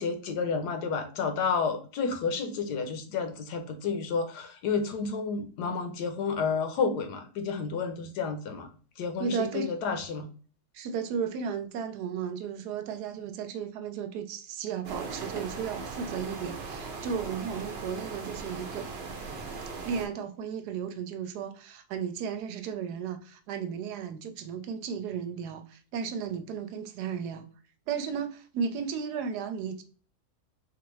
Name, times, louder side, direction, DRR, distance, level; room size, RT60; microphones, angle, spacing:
voice 1, 0.0-8.7 9.0-10.3, left 5 dB, 80° left, 1.2 m, -30 dB
voice 2, 9.2-9.7 10.7-18.9 19.8-27.5 27.9-29.8, right 6 dB, 80° right, 1.1 m, -34 dB
sound 1, 14.8-20.1, right 4 dB, 55° right, 0.7 m, -39 dB
4.1 x 2.5 x 3.1 m
omnidirectional pair, 1.7 m